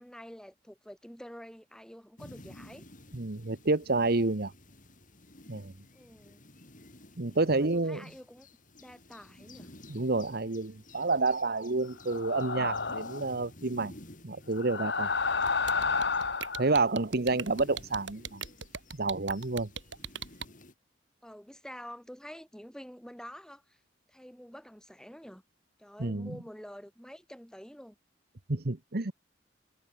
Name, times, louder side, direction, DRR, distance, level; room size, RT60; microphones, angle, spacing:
voice 1, 0.0-2.8 5.9-6.5 7.5-8.5 8.8-9.7 21.2-23.8 24.1-25.4 25.8-28.0, equal, 5° left, 6.7 m, -48 dB
sound 1, 2.2-20.7, left 1 dB, 45° left, 7.2 m, -54 dB
voice 2, 3.1-4.5 5.5-5.7 7.2-8.0 9.9-13.9 14.2-15.1 16.6-18.4 19.0-19.7 26.0-26.3 28.5-29.1, right 3 dB, 55° right, 1.2 m, -29 dB
sound 2, 12.1-13.3 14.5-16.7, left 4 dB, 65° left, 2.6 m, -30 dB
sound 3, 15.5-20.5, right 7 dB, 80° right, 7.3 m, -39 dB
head